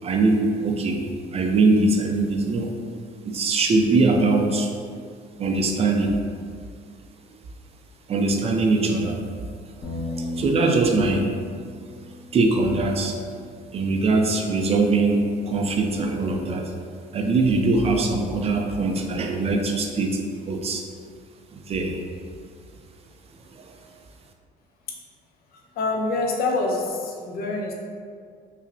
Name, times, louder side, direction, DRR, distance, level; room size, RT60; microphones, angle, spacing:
voice 1, 0.0-2.7 3.3-4.7 5.4-6.2 8.1-9.2 10.1-11.3 12.3-13.2 13.7-16.7 17.1-20.2 20.5-20.8 21.5-22.0 23.6-23.8, right 3 dB, 35° right, 3 dB, 0.4 m, -22 dB
Bass guitar, 9.8-16.1, left 2 dB, 45° left, 1.0 m, -38 dB
voice 2, 25.8-27.7, left 3 dB, 65° left, 0 dB, 0.6 m, -25 dB
5.2 x 2.1 x 2.6 m, 2.1 s
cardioid pair, 110°, 17 cm